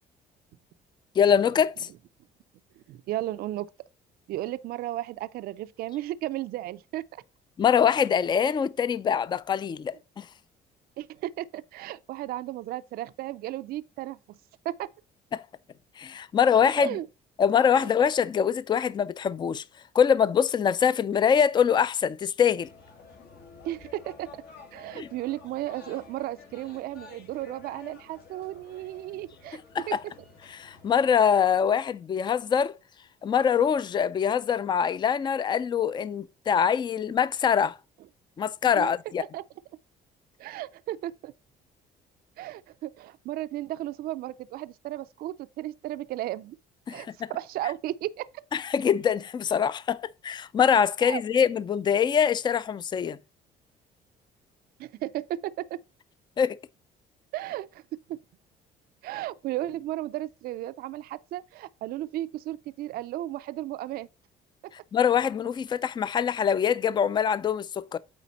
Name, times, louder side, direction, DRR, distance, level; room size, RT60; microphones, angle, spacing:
voice 1, 1.2-1.9 7.6-10.3 15.3-15.5 16.0-17.0 17.4-19.6 19.9-22.7 24.9-25.1 29.7-30.0 30.5-32.7 33.2-37.8 38.4-39.2 46.9-47.3 48.5-53.2 56.4-56.6 64.9-68.0, left 7 dB, 25° left, 0.4 m, -24 dB
voice 2, 2.8-3.7 4.3-7.0 11.0-14.4 14.6-14.9 16.7-17.1 17.8-17.9 23.6-24.4 24.7-29.6 29.9-30.0 38.8-38.9 39.3-39.4 40.4-41.3 42.4-46.6 46.9-48.3 51.0-51.2 54.8-55.8 57.3-57.8 58.1-58.2 59.0-64.1, right 14 dB, 65° right, 0.4 m, -34 dB
sound 1, 22.6-31.3, left 4 dB, 70° left, 2.2 m, -51 dB
8.3 x 3.9 x 4.1 m
cardioid pair, 110°, 17 cm